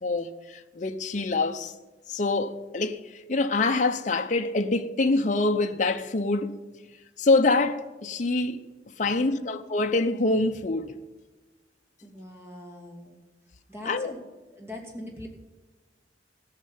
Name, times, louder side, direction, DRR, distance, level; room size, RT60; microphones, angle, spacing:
voice 1, 0.0-1.7 2.1-6.6 7.2-8.6 9.0-10.9 13.9-14.1, left 3 dB, 45° left, 0.7 m, -25 dB
voice 2, 9.1-9.5 12.0-13.2 13.7-14.2 14.5-15.3, left 1 dB, 15° right, 2.6 m, -41 dB
13.5 x 6.6 x 9.4 m
head